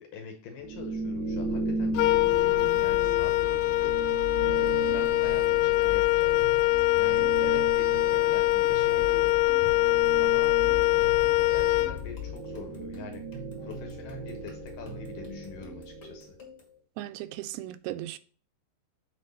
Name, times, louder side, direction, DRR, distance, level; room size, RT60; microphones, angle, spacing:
voice 1, 0.0-6.4 6.9-9.4 10.2-16.4, left 6 dB, 70° left, 2.2 m, -44 dB
sound 1, 0.6-16.4, right 2 dB, 30° right, 1.2 m, -37 dB
Wind instrument woodwind instrument, 1.9-12.4, left 18 dB, 85° left, 2.6 m, -24 dB
sound 2, 4.5-16.8, right 2 dB, 40° left, 1.9 m, -48 dB
voice 2, 17.0-18.2, right 14 dB, 85° right, 2.6 m, -37 dB
6.7 x 4.3 x 5.4 m
omnidirectional pair, 4.8 m